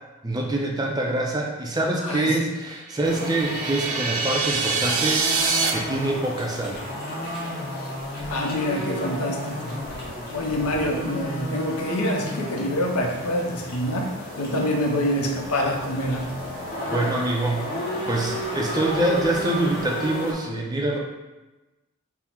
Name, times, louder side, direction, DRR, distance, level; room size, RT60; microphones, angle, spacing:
voice 1, 0.2-5.3 5.7-6.9 16.9-17.6 18.1-21.0, right 2 dB, 15° right, -1 dB, 0.4 m, -25 dB
voice 2, 2.0-2.3 8.3-9.8 10.3-14.1 14.4-16.3, left 1 dB, 85° left, 2 dB, 0.6 m, -26 dB
sound 1, 2.9-5.7, right 4 dB, 90° right, 0.5 m, -25 dB
sound 2, 3.0-20.3, equal, 40° left, 0.9 m, -33 dB
3.5 x 2.0 x 4.3 m, 1.1 s
head